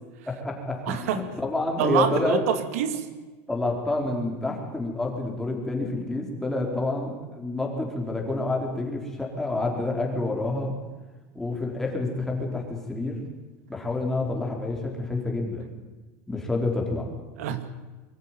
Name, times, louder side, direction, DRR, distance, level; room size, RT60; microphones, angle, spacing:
voice 1, 0.3-2.4 3.5-10.7 11.3-13.2 13.7-15.7 16.3-17.1, left 2 dB, 5° left, 0 dB, 4.3 m, -28 dB
voice 2, 0.9-1.2 1.8-3.1 17.4-17.7, right 9 dB, 85° right, 10 dB, 2.2 m, -26 dB
23.5 x 14.5 x 9.0 m, 1.2 s
supercardioid pair, 155°, 8 cm